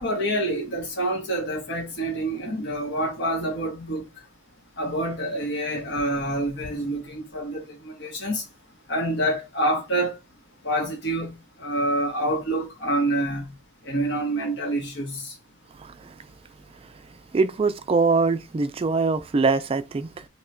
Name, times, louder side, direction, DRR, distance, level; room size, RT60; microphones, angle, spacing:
voice 1, 0.0-4.1 4.8-8.4 8.9-10.1 10.6-11.3 11.6-13.5 13.8-15.3, right 1 dB, 65° left, 1.1 m, -27 dB
voice 2, 15.7-16.2 17.3-20.3, right 4 dB, 30° right, 0.3 m, -23 dB
2.9 x 2.3 x 4.2 m
head